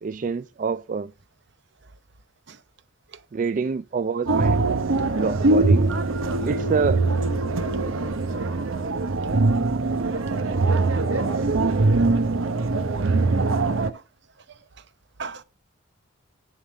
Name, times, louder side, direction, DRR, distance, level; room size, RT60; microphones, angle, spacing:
voice 1, 0.0-1.1 3.3-4.6 4.9-5.9 6.4-7.0 10.4-10.6, right 5 dB, 40° right, 0.3 m, -27 dB
sound 1, 4.3-13.9, right 3 dB, 90° right, 0.9 m, -22 dB
voice 2, 10.8-11.2 11.6-12.0 13.3-13.5 13.9-14.0 14.5-14.8 15.2-15.4, right 4 dB, 60° right, 0.8 m, -42 dB
10.5 x 3.7 x 6.5 m
head